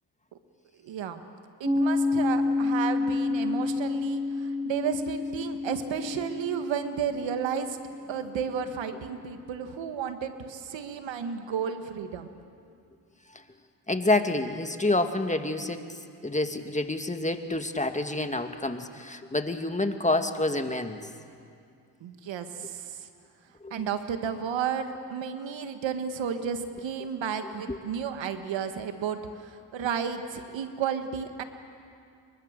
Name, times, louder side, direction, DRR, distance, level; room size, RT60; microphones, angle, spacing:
voice 1, 0.8-1.2 1.6-7.8 8.1-12.3 22.0-23.1 23.7-31.4, right 7 dB, 75° right, 8 dB, 1.7 m, -32 dB
Piano, 1.6-8.9, left 3 dB, 15° right, 7.4 m, -29 dB
voice 2, 13.9-15.8 16.2-21.1 23.6-23.7 27.7-27.8, left 2 dB, 15° left, 7 dB, 2.1 m, -28 dB
29.0 x 23.5 x 6.8 m, 2.4 s
supercardioid pair, 55°, 45 cm